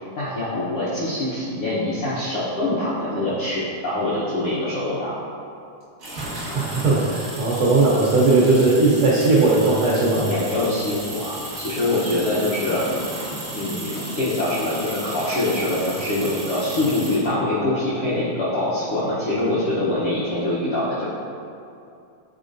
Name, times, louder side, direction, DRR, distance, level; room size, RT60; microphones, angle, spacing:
voice 1, 0.2-5.1 10.3-12.9 13.5-21.1, left 1 dB, 70° left, -10 dB, 1.3 m, -24 dB
sound 1, 6.0-17.3, right 1 dB, 50° right, 0.7 m, -34 dB
voice 2, 6.5-10.3, right 3 dB, 80° right, -6 dB, 1.2 m, -18 dB
8.8 x 4.2 x 2.6 m, 2.5 s
omnidirectional pair, 3.6 m